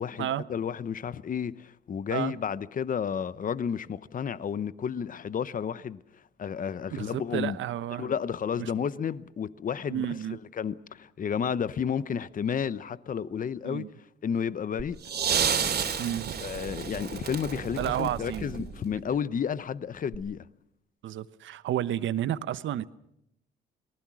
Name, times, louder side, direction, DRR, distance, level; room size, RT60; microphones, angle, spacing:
voice 1, 0.0-7.6 7.9-13.9 14.2-15.0 15.9-16.0 16.4-20.5, left 7 dB, 45° left, 0.9 m, -32 dB
voice 2, 6.9-8.1 8.6-8.7 9.9-10.4 13.6-13.9 16.0-16.4 17.8-18.5 21.0-22.9, right 11 dB, 75° right, 1.0 m, -31 dB
sound 1, 14.8-19.0 20.1-20.2, right 7 dB, 55° right, 3.3 m, -31 dB
28.0 x 19.5 x 6.2 m
cardioid pair, 90°, 20 cm